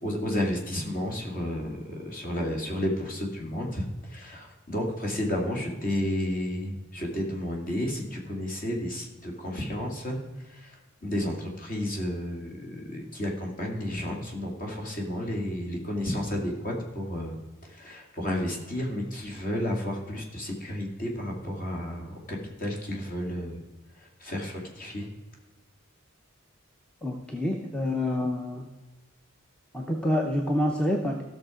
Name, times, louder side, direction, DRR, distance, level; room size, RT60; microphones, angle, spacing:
voice 1, 0.0-10.2 10.4-10.7 11.0-17.4 17.7-23.6 24.2-25.1, left 1 dB, 40° left, 0 dB, 2.3 m, -32 dB
voice 2, 27.0-28.7 29.7-31.2, left 1 dB, 5° left, 1 dB, 0.7 m, -27 dB
15.0 x 6.5 x 5.0 m, 1.2 s
head